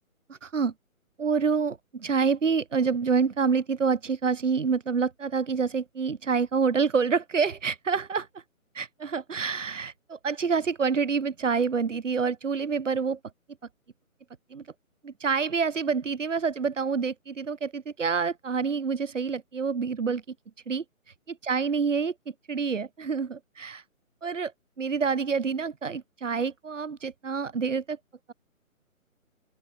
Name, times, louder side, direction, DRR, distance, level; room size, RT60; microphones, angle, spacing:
voice 1, 0.3-0.7 1.2-8.4 8.7-13.2 14.5-14.6 15.0-20.2 20.7-20.8 21.3-22.1 22.5-23.8 24.2-24.5 24.8-28.0, right 5 dB, 60° right, 7.9 m, -27 dB
open air
hypercardioid pair, 165°, 42 cm